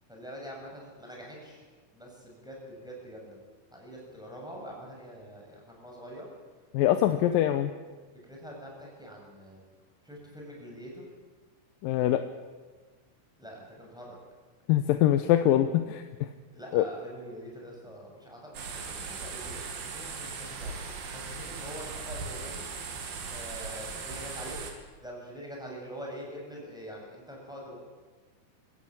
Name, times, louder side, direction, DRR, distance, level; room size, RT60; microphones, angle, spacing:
voice 1, 0.1-1.6 1.9-3.4 3.7-6.3 6.9-7.6 8.2-9.6 10.0-11.0 13.4-14.2 16.5-19.6 19.9-20.8 21.1-22.7 23.2-24.6 25.0-27.8, equal, ahead, -2 dB, 6.7 m, -44 dB
voice 2, 6.7-7.7 11.8-12.2 14.7-16.0 16.7-16.9, left 12 dB, 75° left, 9 dB, 2.3 m, -23 dB
sound 1, 18.5-24.7, right 5 dB, 70° right, 4.0 m, -38 dB
24.5 x 15.5 x 8.8 m, 1.4 s
omnidirectional pair, 4.4 m